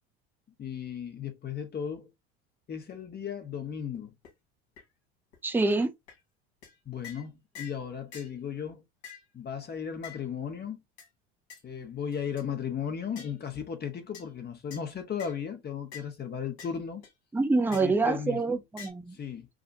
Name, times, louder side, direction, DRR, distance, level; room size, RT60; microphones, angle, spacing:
voice 1, 0.6-2.1 2.7-4.1 6.9-8.8 9.3-10.8 11.6-17.0 17.8-18.6 19.1-19.5, left 7 dB, 30° left, 1.1 m, -36 dB
sound 1, 3.9-4.0 4.2-4.3 4.8-4.9 5.3-5.4 5.7-5.8 6.1-6.2 6.6-6.8 7.0-7.3 7.6-7.8 8.1-8.3 9.0-9.3 10.0-10.2 11.0-11.1 11.5-11.6 12.1-12.5 13.2-13.4 14.1-14.3 14.7-14.8 15.2-15.4 15.9-16.1 16.6-16.8 17.0-17.1 17.7-18.0 18.8-18.9, left 7 dB, 75° left, 2.4 m, -46 dB
voice 2, 5.4-5.9 17.3-19.2, right 3 dB, 5° right, 0.6 m, -26 dB
4.9 x 2.3 x 2.6 m
hypercardioid pair, 85°, 32 cm